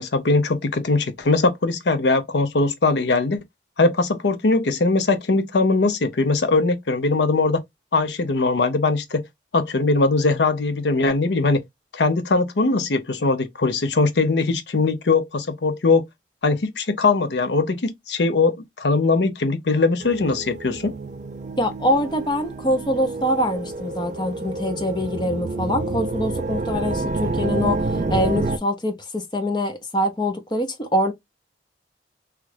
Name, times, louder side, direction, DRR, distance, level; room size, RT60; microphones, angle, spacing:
voice 1, 0.0-3.4 3.8-7.6 7.9-9.2 9.5-11.6 11.9-16.1 16.4-20.9, left 3 dB, 80° left, 0.6 m, -21 dB
sound 1, 20.0-28.6, right 3 dB, 40° right, 0.3 m, -28 dB
voice 2, 21.6-27.8 28.1-31.1, left 1 dB, 25° left, 0.7 m, -24 dB
3.1 x 2.4 x 3.2 m
head